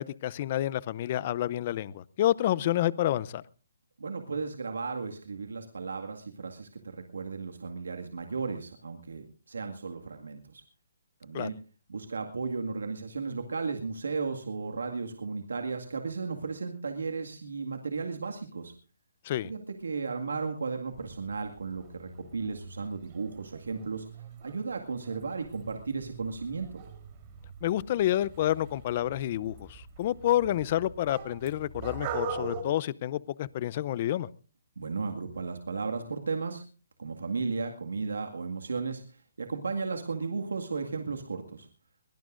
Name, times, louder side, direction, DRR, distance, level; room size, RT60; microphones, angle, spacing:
voice 1, 0.0-3.4 11.3-11.5 19.2-19.5 27.6-34.3, left 13 dB, 40° left, 0.7 m, -29 dB
voice 2, 4.0-10.6 11.2-11.5 11.9-18.7 19.4-24.1 24.4-26.8 34.8-36.6 37.0-39.0 39.4-41.7, right 4 dB, 85° right, 2.0 m, -35 dB
sound 1, 20.9-32.6, right 4 dB, 35° right, 3.9 m, -43 dB
22.0 x 18.0 x 2.6 m
hypercardioid pair, 145°, 0 cm